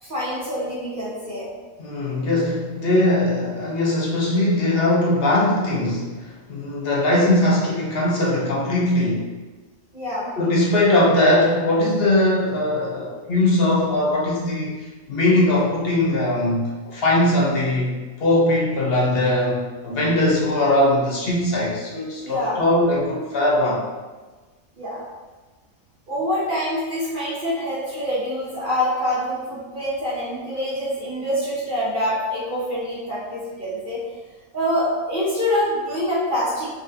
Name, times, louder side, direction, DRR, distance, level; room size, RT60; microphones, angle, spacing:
voice 1, 0.0-1.5 9.9-10.3 22.2-22.6 24.8-25.0 26.1-34.0 34.5-36.7, equal, 40° right, -10 dB, 1.5 m, -25 dB
voice 2, 1.8-9.3 10.4-14.8 15.1-17.9 18.2-23.8, left 1 dB, 45° left, -3 dB, 1.1 m, -20 dB
5.5 x 3.0 x 2.9 m, 1.3 s
omnidirectional pair, 1.5 m